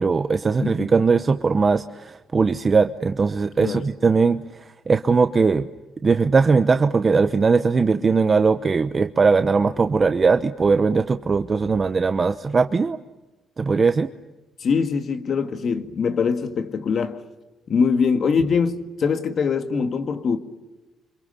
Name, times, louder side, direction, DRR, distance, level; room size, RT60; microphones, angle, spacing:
voice 1, 0.0-5.7 6.0-13.0 13.6-14.1, right 4 dB, 35° right, 0.9 m, -20 dB
voice 2, 14.6-17.2 17.7-20.4, left 5 dB, 55° left, 2.1 m, -23 dB
29.5 x 26.5 x 6.8 m
cardioid pair, 90°, 0 cm